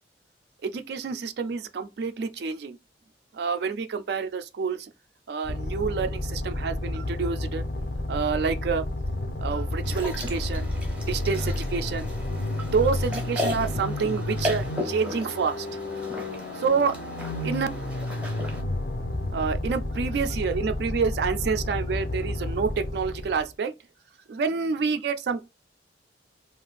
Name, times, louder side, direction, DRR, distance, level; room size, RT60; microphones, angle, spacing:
voice 1, 0.6-2.8 3.3-4.9 5.3-7.6 8.1-8.8 9.4-10.7 11.1-12.1 12.7-15.8 16.5-17.0 17.4-17.7 19.3-23.7 24.3-25.4, right 5 dB, 65° right, 0.3 m, -28 dB
sound 1, 5.4-23.5, left 1 dB, 50° left, 0.4 m, -31 dB
sound 2, 9.8-18.6, left 1 dB, 5° right, 0.5 m, -36 dB
2.5 x 2.3 x 3.3 m
head